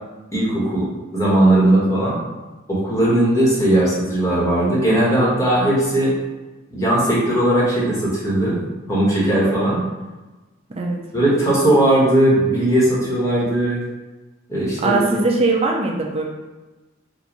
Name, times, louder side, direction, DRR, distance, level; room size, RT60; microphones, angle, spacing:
voice 1, 0.3-0.9 1.1-2.2 2.7-6.1 6.7-8.6 8.9-9.8 11.1-13.8 14.5-15.1, right 1 dB, 15° left, -7 dB, 1.5 m, -18 dB
voice 2, 14.8-16.2, right 3 dB, 30° right, 0 dB, 0.5 m, -20 dB
4.0 x 2.6 x 4.6 m, 1.2 s
head